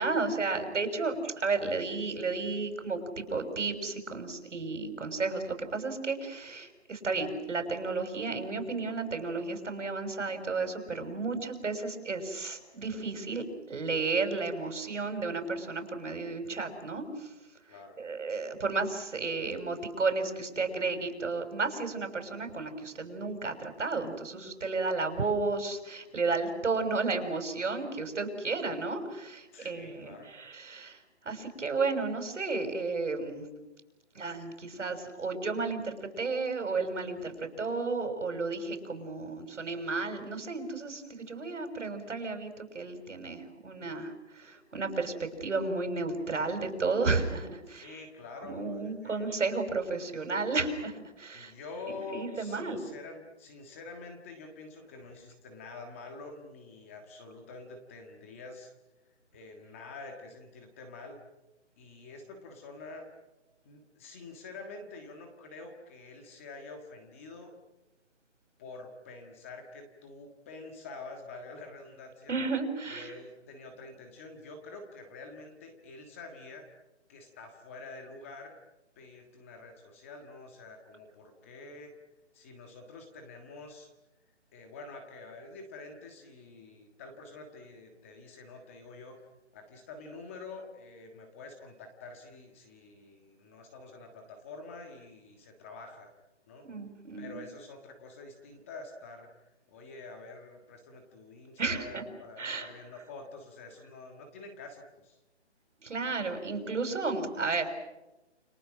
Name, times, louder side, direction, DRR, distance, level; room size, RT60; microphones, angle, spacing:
voice 1, 0.0-17.3 17.7-33.5 34.1-48.0 48.4-51.5 52.1-52.8 72.3-73.1 96.6-97.4 101.6-102.0 102.4-102.7 105.8-107.7, right 3 dB, 90° right, 6 dB, 6.4 m, -33 dB
voice 2, 17.7-18.0 29.5-30.3 47.7-49.4 51.3-58.7 59.3-61.2 61.8-63.1 63.6-67.5 68.6-72.3 72.9-76.7 77.1-78.5 79.0-81.9 82.3-83.9 84.5-89.2 89.5-96.1 96.5-96.7 97.2-99.3 99.7-105.2, left 3 dB, 10° left, 4 dB, 1.5 m, -47 dB
29.5 x 27.0 x 6.3 m, 1.0 s
hypercardioid pair, 175°, 35 cm